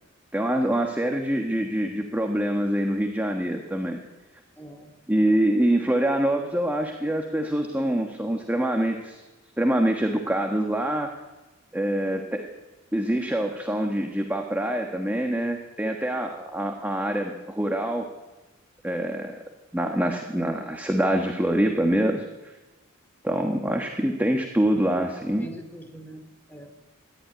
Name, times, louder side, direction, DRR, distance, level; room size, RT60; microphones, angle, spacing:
voice 1, 0.3-4.0 5.1-9.2 9.6-11.1 11.7-12.5 12.9-18.1 18.8-19.4 19.7-22.6 23.2-25.5, right 1 dB, 10° right, 2 dB, 1.4 m, -25 dB
voice 2, 4.6-5.0 25.4-27.0, equal, 10° left, 6 dB, 2.8 m, -44 dB
25.0 x 12.0 x 9.7 m, 1.1 s
head